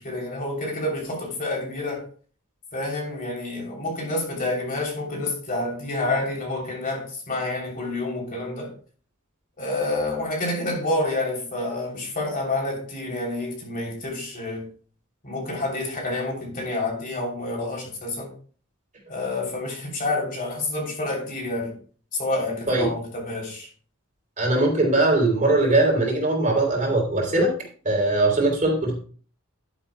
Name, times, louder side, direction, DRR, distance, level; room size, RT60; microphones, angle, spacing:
voice 1, 0.0-2.1 2.7-8.7 9.6-14.7 15.2-18.3 19.1-21.8 22.1-23.7, left 2 dB, 40° left, 3.2 m, -28 dB
voice 2, 24.4-27.5 27.8-29.0, right 2 dB, 35° right, 3.3 m, -20 dB
11.5 x 9.8 x 2.2 m
head